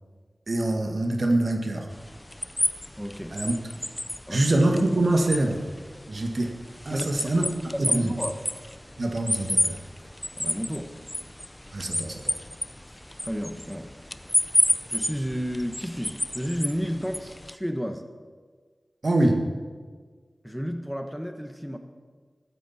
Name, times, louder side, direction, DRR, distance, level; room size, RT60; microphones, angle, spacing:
voice 1, 0.5-1.9 3.3-3.5 4.3-5.6 6.1-6.6 6.9-7.5 7.8-8.1 9.0-9.8 11.7-12.2 19.0-19.4, right 1 dB, 65° right, 3 dB, 1.8 m, -24 dB
sound 1, 1.9-17.5, left 1 dB, 15° left, 0.6 m, -31 dB
voice 2, 3.0-3.4 4.3-4.5 6.9-8.3 10.4-10.9 13.2-13.9 14.9-18.0 20.4-21.8, equal, ahead, 6 dB, 1.4 m, -32 dB
15.5 x 12.0 x 4.4 m, 1.5 s
cardioid pair, 40°, 0 cm